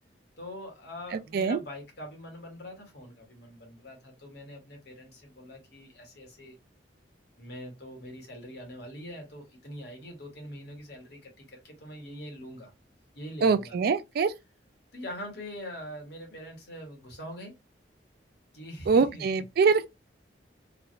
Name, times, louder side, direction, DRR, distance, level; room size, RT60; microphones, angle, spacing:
voice 1, 0.4-6.6 7.4-12.7 13.1-13.7 14.9-17.5 18.5-19.4, equal, 65° left, 1.3 m, -43 dB
voice 2, 13.4-14.3 18.9-19.9, right 5 dB, 55° right, 0.3 m, -23 dB
3.1 x 2.4 x 2.6 m
head